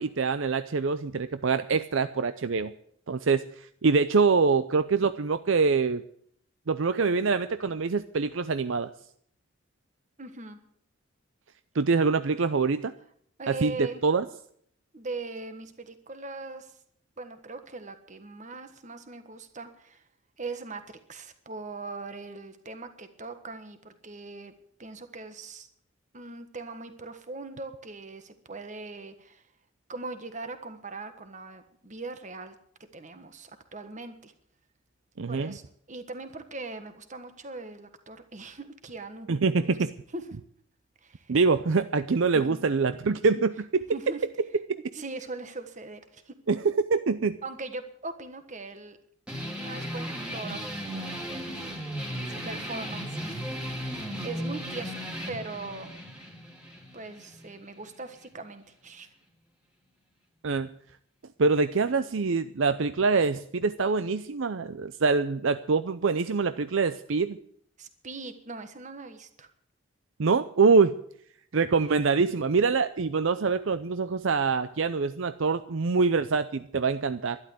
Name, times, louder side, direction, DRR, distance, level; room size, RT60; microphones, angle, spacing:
voice 1, 0.0-2.7 3.1-6.0 6.7-8.9 11.7-12.9 13.5-14.2 35.2-35.6 39.3-39.9 41.3-43.5 46.5-47.4 60.4-60.7 61.4-67.4 70.2-71.0 71.5-77.4, right 4 dB, 65° right, 12 dB, 0.5 m, -25 dB
voice 2, 10.2-10.6 13.4-14.0 14.9-16.8 17.2-20.0 20.4-24.5 24.8-25.7 26.1-29.4 29.9-32.5 32.9-34.3 35.3-35.6 35.9-39.3 39.6-39.7 40.1-40.3 41.0-41.3 42.3-42.6 43.9-44.2 44.9-46.3 47.4-49.0 49.5-51.6 52.2-53.4 54.2-55.0 55.3-55.9 56.9-59.1 67.8-69.5, right 3 dB, 35° right, 9 dB, 1.5 m, -40 dB
sound 1, 49.3-58.3, equal, 5° right, 2.8 m, -36 dB
12.0 x 11.5 x 7.9 m, 0.65 s
head